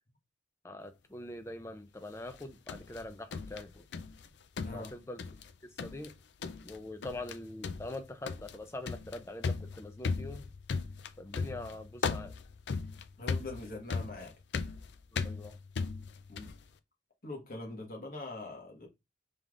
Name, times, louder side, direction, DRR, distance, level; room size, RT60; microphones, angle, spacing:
voice 1, 0.6-3.9 4.7-5.2 5.6-6.1 6.6-10.5 11.2-12.4 15.1-15.6, left 2 dB, 15° left, 0.5 m, -43 dB
sound 1, 2.3-4.3 4.6-5.5 5.8-6.1 6.4-6.8 7.0-7.4 7.6-16.6, left 4 dB, 75° left, 0.4 m, -37 dB
voice 2, 13.2-14.3 16.3-16.5 17.2-18.9, left 2 dB, 50° left, 1.4 m, -42 dB
5.4 x 3.3 x 2.5 m
head